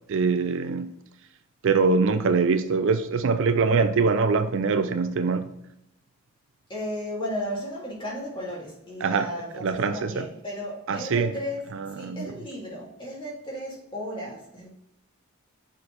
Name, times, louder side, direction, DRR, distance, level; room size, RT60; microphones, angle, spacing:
voice 1, 0.1-0.9 1.6-5.5 9.0-9.3 9.6-10.2 10.9-11.3 11.7-12.3, right 4 dB, 60° right, 0.4 m, -23 dB
voice 2, 6.7-14.7, equal, 20° left, 2.5 m, -34 dB
6.7 x 4.4 x 4.0 m
head